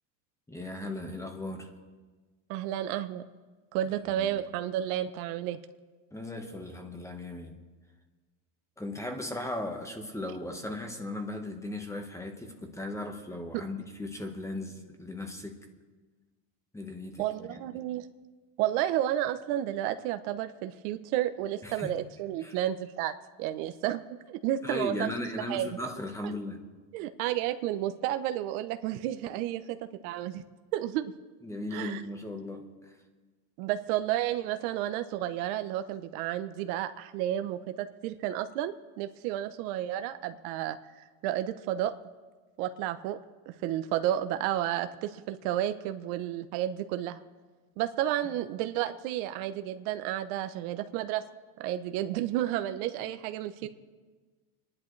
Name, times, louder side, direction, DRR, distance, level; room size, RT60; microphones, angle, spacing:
voice 1, 0.5-1.7 4.2-4.4 6.1-7.6 8.8-15.7 16.7-17.6 21.6-21.9 22.4-22.6 24.6-26.7 31.4-32.9 48.2-48.3 53.6-53.7, left 1 dB, 5° left, 4 dB, 1.2 m, -37 dB
voice 2, 2.5-3.2 3.7-5.6 13.5-13.6 17.2-18.1 18.6-23.1 23.4-25.1 25.5-25.7 26.2-26.3 26.9-29.8 30.0-30.4 30.7-31.1 31.7-32.0 33.6-41.9 42.6-43.2 43.5-47.2 47.8-51.2 51.6-53.7, right 12 dB, 70° right, 10 dB, 0.8 m, -31 dB
27.5 x 10.5 x 3.2 m, 1.3 s
supercardioid pair, 135°, 45 cm